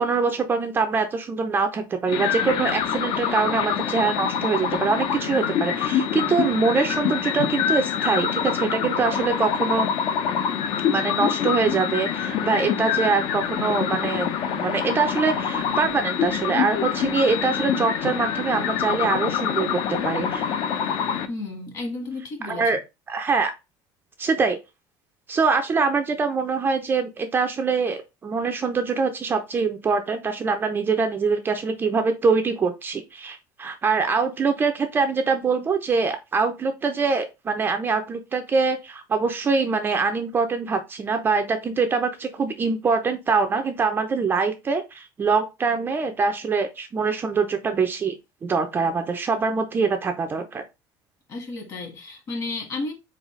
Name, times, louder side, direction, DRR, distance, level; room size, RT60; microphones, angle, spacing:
voice 1, 0.0-9.9 10.8-20.5 22.4-22.8 23.1-23.5 24.2-24.6 25.3-48.2 48.4-50.6, right 4 dB, 20° right, 0.4 m, -24 dB
sound 1, 2.1-21.3, left 8 dB, 55° left, 0.7 m, -25 dB
voice 2, 21.3-22.8 51.3-52.9, left 3 dB, 35° left, 1.6 m, -32 dB
4.2 x 3.9 x 3.1 m
cardioid pair, 155°, 10 cm